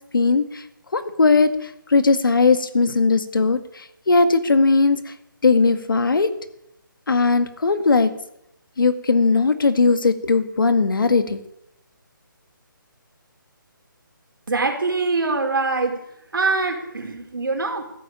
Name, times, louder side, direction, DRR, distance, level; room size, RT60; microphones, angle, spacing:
voice 1, 0.1-0.6 0.9-5.1 5.4-6.3 7.1-8.1 8.8-11.4, left 4 dB, 70° left, 10 dB, 2.0 m, -18 dB
voice 2, 14.5-16.0 16.3-17.9, right 3 dB, 75° right, 3 dB, 4.5 m, -23 dB
13.5 x 10.5 x 9.0 m, 0.78 s
hypercardioid pair, 175°, 11 cm